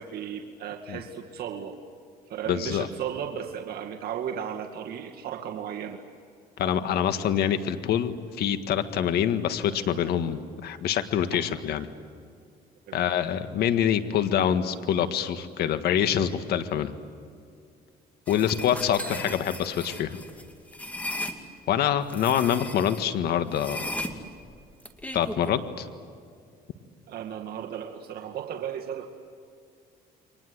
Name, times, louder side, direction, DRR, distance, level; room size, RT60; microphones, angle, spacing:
voice 1, 0.0-1.8 2.3-6.0 11.3-11.4 12.9-13.0 18.3-18.5 27.1-29.1, right 8 dB, 65° right, 2 dB, 2.1 m, -35 dB
voice 2, 2.5-2.9 6.6-11.9 12.9-16.9 18.3-20.2 21.7-23.8 25.1-25.9, left 9 dB, 70° left, 10 dB, 1.7 m, -25 dB
sound 1, 18.3-21.4 22.1-23.0 23.5-25.5, left 1 dB, 10° left, 2.6 m, -36 dB
29.5 x 24.5 x 8.0 m, 2.3 s
cardioid pair, 110°, 17 cm